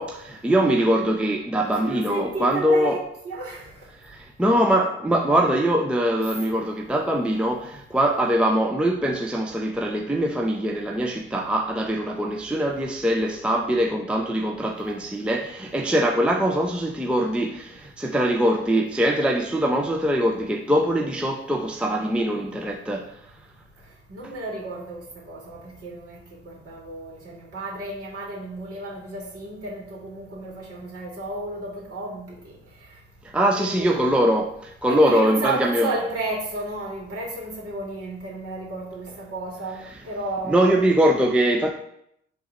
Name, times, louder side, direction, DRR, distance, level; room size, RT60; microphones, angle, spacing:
voice 1, 0.0-3.0 4.0-23.1 33.3-35.9 39.9-40.0 40.5-41.7, right 1 dB, 5° right, 0.6 m, -22 dB
voice 2, 1.6-3.0 3.2-3.7 6.3-6.5 24.1-26.2 26.4-32.5 33.3-34.0 34.9-40.8, right 2 dB, 40° right, 2.6 m, -32 dB
10.0 x 3.6 x 3.0 m
figure-of-eight pair, 40°, 35 cm